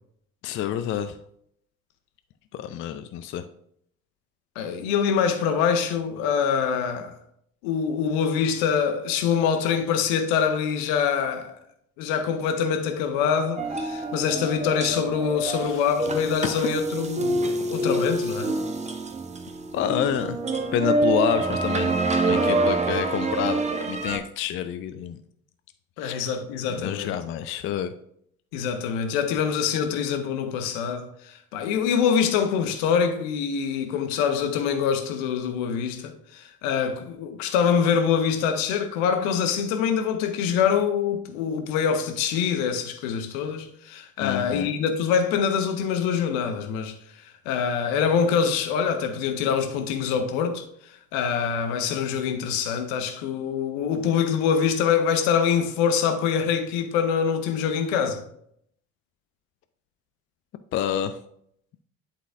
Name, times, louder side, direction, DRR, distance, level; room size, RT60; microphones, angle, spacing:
voice 1, 0.4-1.2 2.5-3.4 15.4-15.8 19.7-20.4 20.7-25.2 26.0-26.1 26.7-27.9 44.2-44.7 60.7-61.2, left 10 dB, 30° left, 0.4 m, -28 dB
voice 2, 4.5-7.1 7.6-11.5 12.0-18.5 26.0-27.1 28.5-46.9 47.4-50.6 51.1-58.2, left 7 dB, 60° left, 1.2 m, -25 dB
sound 1, 13.6-24.2, right 2 dB, 15° right, 0.9 m, -26 dB
11.0 x 4.1 x 2.6 m
figure-of-eight pair, 60°, 44 cm